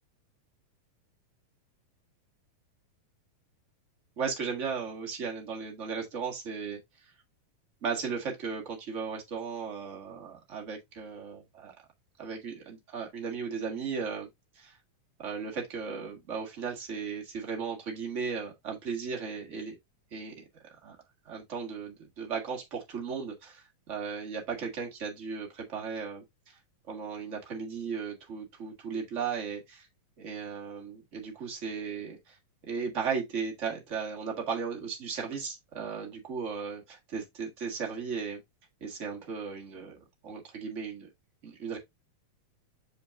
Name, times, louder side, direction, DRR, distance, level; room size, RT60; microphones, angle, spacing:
voice 1, 4.2-6.8 7.8-11.7 12.2-14.3 14.5-14.8 15.2-19.8 20.1-21.0 21.2-26.6 26.9-29.9 30.2-32.4 32.6-38.4 38.8-41.1 41.4-41.8, right 5 dB, 30° right, 1.4 m, -36 dB
6.7 x 5.6 x 2.5 m
omnidirectional pair, 4.1 m